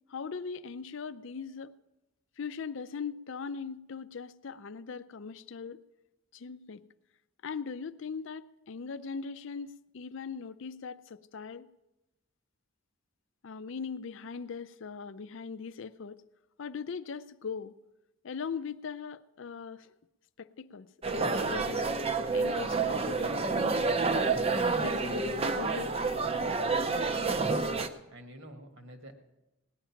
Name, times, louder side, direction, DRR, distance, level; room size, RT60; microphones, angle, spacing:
voice 1, 0.1-1.7 2.4-5.8 6.3-6.8 7.4-11.7 13.4-16.2 16.6-17.7 18.2-19.9 20.4-21.9 22.3-23.8 24.8-26.1, left 5 dB, 60° left, 13 dB, 0.5 m, -40 dB
sound 1, 21.0-27.9, right 3 dB, 25° right, 0.6 m, -29 dB
voice 2, 27.3-29.1, equal, 55° right, 6 dB, 1.6 m, -49 dB
18.0 x 10.0 x 5.7 m, 0.97 s
head